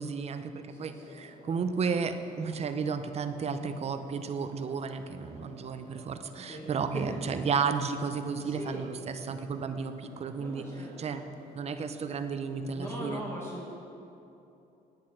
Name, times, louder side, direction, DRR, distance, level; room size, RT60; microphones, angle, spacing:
voice 1, 0.0-10.6 11.0-11.2 11.5-13.2, right 5 dB, 40° right, 9 dB, 0.7 m, -33 dB
sound 1, 0.7-13.1, left 2 dB, 65° left, 2.3 m, -53 dB
voice 2, 0.7-1.2 3.4-3.7 6.4-7.2 8.4-8.8 10.4-11.6 12.6-13.7, equal, 15° left, -4 dB, 1.6 m, -41 dB
9.7 x 8.6 x 5.8 m, 2.8 s
cardioid pair, 110°, 17 cm